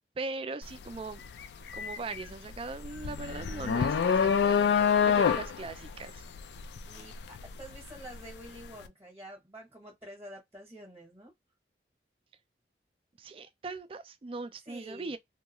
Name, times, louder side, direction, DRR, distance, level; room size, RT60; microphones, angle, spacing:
voice 1, 0.2-1.2 1.7-6.2 13.2-15.2, right 3 dB, 30° right, 0.3 m, -40 dB
sound 1, 0.6-0.9 1.2-8.3, left 7 dB, 70° left, 0.3 m, -27 dB
voice 2, 6.9-11.3 14.7-15.1, right 1 dB, 15° right, 0.9 m, -48 dB
2.4 x 2.2 x 2.9 m
head